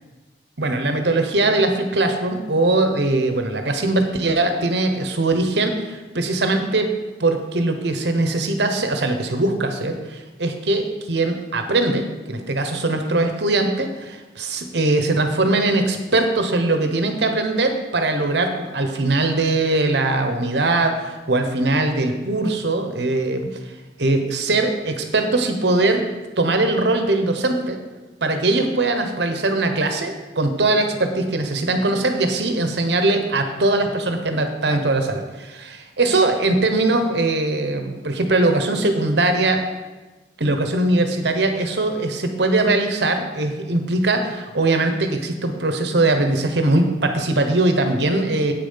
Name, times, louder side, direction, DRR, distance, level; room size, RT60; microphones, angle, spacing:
voice 1, 0.6-6.9 7.2-23.7 24.0-26.0 26.4-27.8 28.2-39.6 40.4-48.5, right 2 dB, 65° right, 6 dB, 1.1 m, -21 dB
8.3 x 7.1 x 5.7 m, 1.2 s
head